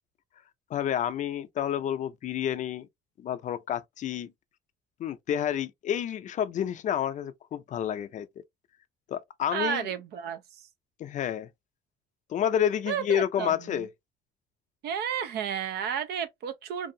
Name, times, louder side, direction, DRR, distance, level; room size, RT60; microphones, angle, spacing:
voice 1, 0.7-2.9 3.2-4.3 5.0-8.3 9.1-9.9 11.0-11.5 12.3-13.9, left 10 dB, 45° left, 0.4 m, -29 dB
voice 2, 9.5-10.4 12.9-13.8 14.8-16.9, right 8 dB, 75° right, 0.6 m, -32 dB
2.6 x 2.4 x 2.6 m
cardioid pair, 110°, 17 cm